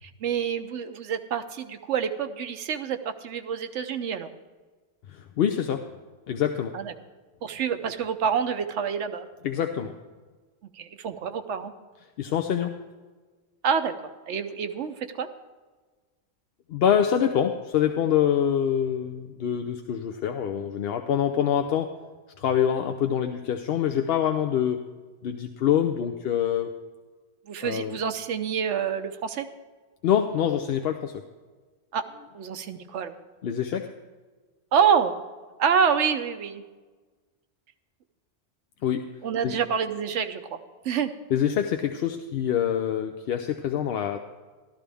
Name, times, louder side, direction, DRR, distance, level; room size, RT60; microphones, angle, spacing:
voice 1, 0.0-4.3 6.7-6.9 7.4-9.3 10.7-11.7 13.6-13.9 14.3-15.3 27.5-29.5 31.9-32.1 32.3-33.1 34.7-35.1 35.6-36.6 39.2-41.1, right 7 dB, 80° right, 8 dB, 1.1 m, -27 dB
voice 2, 5.1-5.8 6.3-6.7 9.4-9.9 12.2-12.8 16.7-21.9 22.4-24.8 25.2-26.8 27.6-28.0 30.0-31.2 33.4-33.9 38.8-39.0 39.4-39.6 41.3-44.2, left 9 dB, 65° left, 6 dB, 0.7 m, -25 dB
13.0 x 12.5 x 3.4 m, 1.4 s
omnidirectional pair, 1.2 m